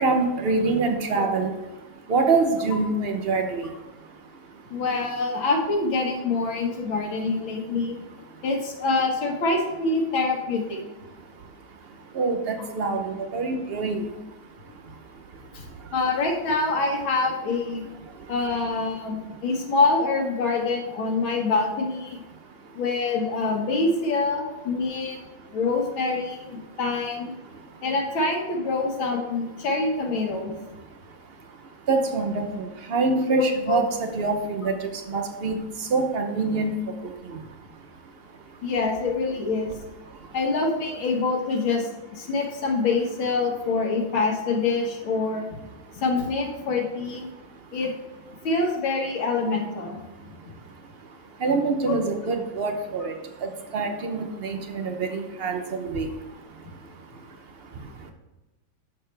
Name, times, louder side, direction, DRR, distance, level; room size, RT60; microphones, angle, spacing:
voice 1, 0.0-1.5 2.1-3.7 12.2-14.1 31.9-34.7 35.1-35.6 35.9-36.7 51.4-53.1 53.4-56.1, right 3 dB, 80° right, 5 dB, 0.5 m, -25 dB
voice 2, 4.7-8.0 8.4-10.8 15.5-15.7 15.9-17.8 18.3-22.2 22.7-25.2 25.5-27.3 27.8-30.5 33.3-33.8 38.6-39.7 40.3-45.5 45.9-47.3 47.7-47.9 48.4-50.0 50.3-50.4 51.9-52.0, left 3 dB, 80° left, 0 dB, 2.3 m, -25 dB
11.0 x 6.7 x 3.3 m, 1.1 s
omnidirectional pair, 2.2 m